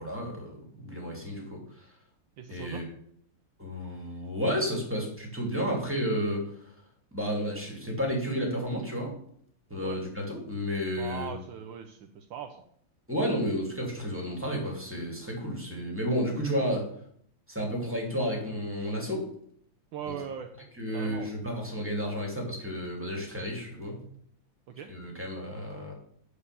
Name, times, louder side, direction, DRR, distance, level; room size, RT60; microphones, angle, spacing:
voice 1, 0.0-1.8 2.5-2.9 3.6-6.4 7.1-9.1 9.7-11.3 13.1-16.9 17.5-19.3 20.8-24.0 24.9-25.9, equal, 5° right, -1 dB, 2.3 m, -32 dB
voice 2, 2.4-2.8 9.8-10.0 11.0-12.6 16.2-16.8 19.9-20.5 20.9-21.3 24.7-25.0, right 7 dB, 70° right, 6 dB, 1.4 m, -40 dB
9.9 x 4.8 x 6.7 m, 0.65 s
omnidirectional pair, 2.4 m